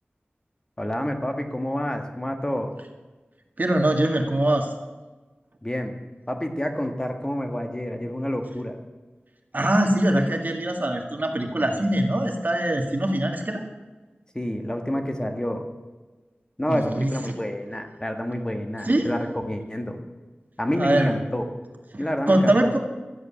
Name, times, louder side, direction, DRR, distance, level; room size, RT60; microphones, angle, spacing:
voice 1, 0.8-2.7 5.6-5.9 6.3-8.8 14.3-15.6 16.6-20.0 20.6-21.5 22.0-22.6, equal, 20° left, 4 dB, 1.7 m, -28 dB
voice 2, 3.6-4.7 9.5-13.6 16.7-17.1 18.9-19.1 20.8-21.1 21.9-22.8, right 1 dB, 50° right, 3 dB, 1.9 m, -22 dB
13.0 x 8.2 x 8.5 m, 1.2 s
wide cardioid pair, 50°, 4 cm